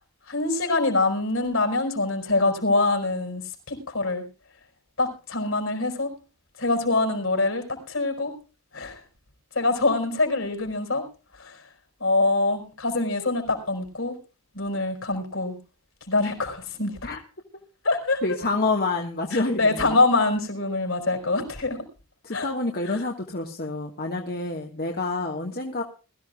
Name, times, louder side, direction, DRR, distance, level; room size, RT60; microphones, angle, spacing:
voice 1, 0.3-4.2 5.0-6.1 6.6-8.3 8.7-9.0 9.5-11.0 11.3-11.7 12.0-14.1 14.5-15.6 16.1-17.0 17.8-18.2 19.3-21.8 22.3-22.5, left 2 dB, 65° left, 4 dB, 5.0 m, -24 dB
voice 2, 18.2-20.0 22.2-25.8, left 3 dB, 45° left, 2 dB, 1.6 m, -28 dB
21.5 x 14.0 x 2.3 m, 0.35 s
head